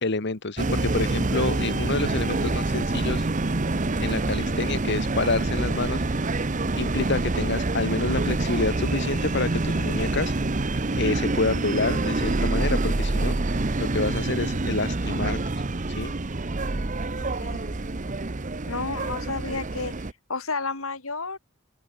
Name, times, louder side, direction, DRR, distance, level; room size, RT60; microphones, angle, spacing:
voice 1, 0.0-3.3 4.0-6.0 6.8-10.3 11.0-13.3 13.8-15.4 15.9-16.1, left 3 dB, 55° left, 1.3 m, -28 dB
sound 1, 0.6-20.1, right 2 dB, 35° right, 0.9 m, -26 dB
voice 2, 17.4-17.7 18.7-19.9 20.3-21.4, left 3 dB, 85° left, 4.6 m, -31 dB
open air
head